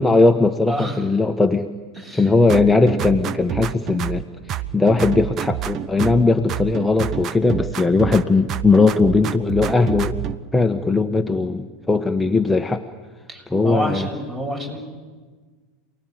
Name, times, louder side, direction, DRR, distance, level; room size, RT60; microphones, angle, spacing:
voice 1, 0.0-1.7 2.1-10.2 10.5-12.8 13.5-14.1, left 3 dB, 10° left, 6 dB, 1.2 m, -18 dB
voice 2, 0.7-1.1 1.9-2.3 13.3-14.8, right 1 dB, 25° right, 4 dB, 7.3 m, -28 dB
sound 1, 2.5-4.2 4.5-6.2 6.5-8.2 8.5-10.4, right 11 dB, 40° right, 0.9 m, -27 dB
28.0 x 19.0 x 9.2 m, 1.5 s
figure-of-eight pair, 85°, 0 cm